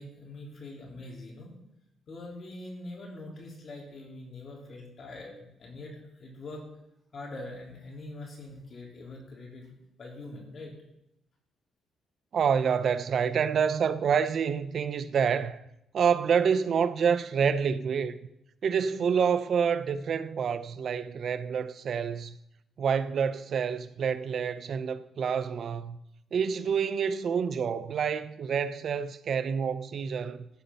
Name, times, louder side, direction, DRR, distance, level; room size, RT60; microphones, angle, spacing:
voice 1, 0.0-1.5 2.1-6.6 7.1-10.7, left 2 dB, 50° left, 3.7 m, -43 dB
voice 2, 12.3-15.6 15.9-18.2 18.6-22.4 22.8-26.0 26.3-30.5, right 7 dB, 55° right, 0.5 m, -27 dB
14.5 x 5.1 x 5.5 m
cardioid pair, 90°, 0 cm